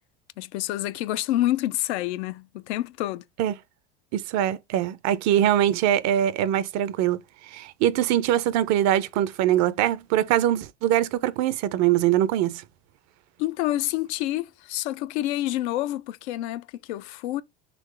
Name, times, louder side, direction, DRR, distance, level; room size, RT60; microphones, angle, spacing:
voice 1, 0.4-3.2 13.4-17.4, left 15 dB, 85° left, 0.5 m, -28 dB
voice 2, 4.1-7.2 7.5-12.6, right 12 dB, 55° right, 0.6 m, -23 dB
3.9 x 3.1 x 3.2 m
supercardioid pair, 95°, 33 cm